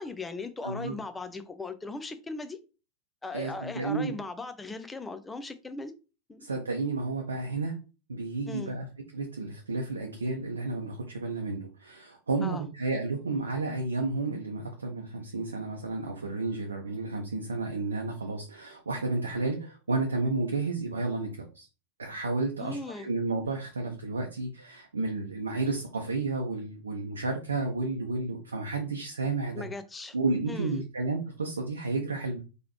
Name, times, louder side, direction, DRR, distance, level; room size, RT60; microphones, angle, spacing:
voice 1, 0.0-2.6 3.2-5.9 6.3-6.5 8.5-8.8 12.4-12.7 22.6-23.1 29.5-30.1 30.5-30.8, left 3 dB, 10° left, 0.5 m, -38 dB
voice 2, 0.6-0.9 3.3-4.1 6.4-7.7 8.1-8.9 9.1-21.7 22.0-29.6 30.1-32.4, right 3 dB, 75° right, 0.6 m, -32 dB
3.8 x 3.0 x 2.9 m
figure-of-eight pair, 90°, 0 cm